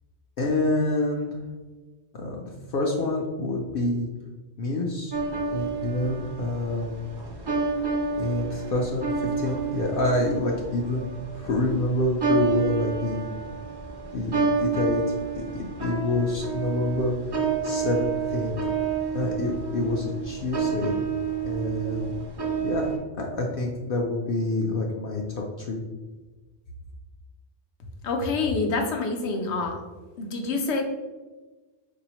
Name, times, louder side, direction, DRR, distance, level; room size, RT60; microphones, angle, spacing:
voice 1, 0.4-1.4 2.1-4.1 4.6-7.0 8.2-11.1 11.3-13.3 14.1-15.0 15.4-17.1 17.6-18.7 19.1-21.0 21.5-22.1 22.6-25.8, left 2 dB, 60° left, -1 dB, 0.7 m, -27 dB
sound 1, 5.1-23.0, right 5 dB, 40° right, 0.3 m, -29 dB
voice 2, 28.0-29.8 30.2-30.8, left 3 dB, 85° left, 3 dB, 0.9 m, -27 dB
4.1 x 2.7 x 2.9 m, 1.3 s
omnidirectional pair, 1.1 m